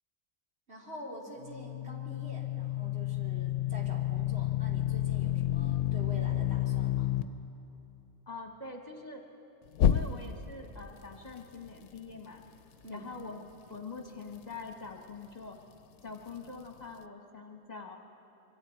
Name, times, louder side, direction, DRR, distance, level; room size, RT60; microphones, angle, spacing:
voice 1, 0.7-7.2 12.8-13.1, equal, 55° right, -3 dB, 3.3 m, -46 dB
sound 1, 1.4-7.2 9.7-10.5, left 12 dB, 80° left, 1.0 m, -30 dB
voice 2, 8.3-9.2 9.8-12.4 12.9-13.4 13.7-15.6 16.0-18.0, left 3 dB, 35° left, 2 dB, 1.4 m, -44 dB
26.0 x 24.0 x 4.5 m, 2.9 s
omnidirectional pair, 1.3 m